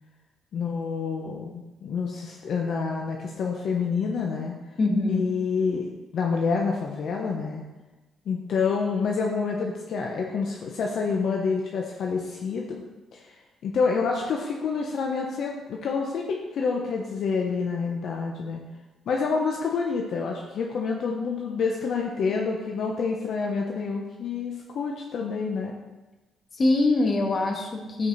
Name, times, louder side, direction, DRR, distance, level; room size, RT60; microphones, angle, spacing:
voice 1, 0.5-4.6 5.1-7.6 8.3-12.8 13.1-13.3 13.6-18.6 19.1-25.7, left 5 dB, 65° left, 0 dB, 1.0 m, -28 dB
voice 2, 4.8-5.2 26.5-28.1, left 2 dB, 40° left, 1 dB, 1.9 m, -23 dB
13.5 x 5.1 x 4.2 m, 1.1 s
cardioid pair, 90°, 0 cm